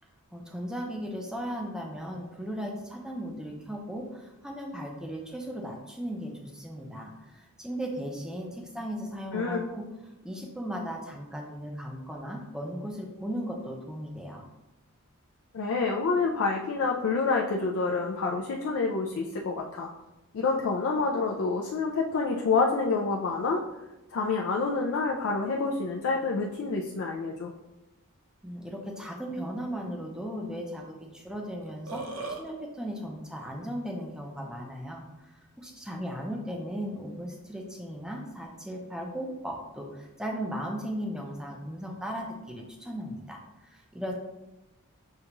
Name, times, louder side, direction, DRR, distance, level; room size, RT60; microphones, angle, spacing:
voice 1, 0.3-9.8 10.2-14.5 28.4-32.0 32.4-44.1, equal, 5° right, 0 dB, 0.5 m, -37 dB
voice 2, 9.3-9.7 15.5-19.9 20.3-23.6 24.1-27.5, left 4 dB, 70° left, -1 dB, 0.4 m, -28 dB
Burping eructation, 31.6-32.4, right 3 dB, 75° right, 0.7 m, -37 dB
6.6 x 2.3 x 2.9 m, 1.0 s
head